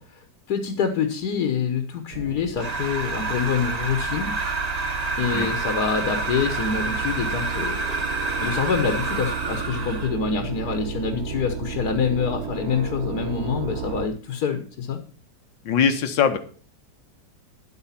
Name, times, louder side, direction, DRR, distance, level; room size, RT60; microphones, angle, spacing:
voice 1, 0.0-4.3 5.2-8.0 8.4-15.0, left 6 dB, 60° left, 6 dB, 1.6 m, -26 dB
sound 1, 2.1-14.1, right 6 dB, 55° right, 0.8 m, -33 dB
sound 2, 2.6-10.2, right 3 dB, 30° right, 0.9 m, -28 dB
voice 2, 15.7-16.4, left 7 dB, 85° left, 8 dB, 1.9 m, -21 dB
10.5 x 8.2 x 5.7 m, 0.41 s
omnidirectional pair, 1.9 m